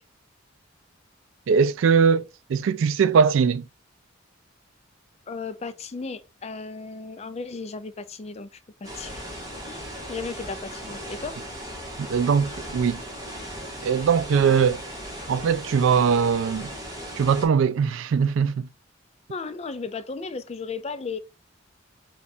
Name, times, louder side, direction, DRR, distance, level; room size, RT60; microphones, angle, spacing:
voice 1, 1.5-2.2 2.5-3.6 12.1-13.0 13.8-14.8 15.3-16.7 17.2-18.7, right 6 dB, 70° right, 0.3 m, -21 dB
voice 2, 5.3-9.3 9.6-11.4 14.4-14.5 19.3-21.2, left 4 dB, 30° left, 0.4 m, -35 dB
sound 1, 8.8-17.5, equal, 20° right, 1.5 m, -37 dB
4.6 x 2.4 x 4.1 m
head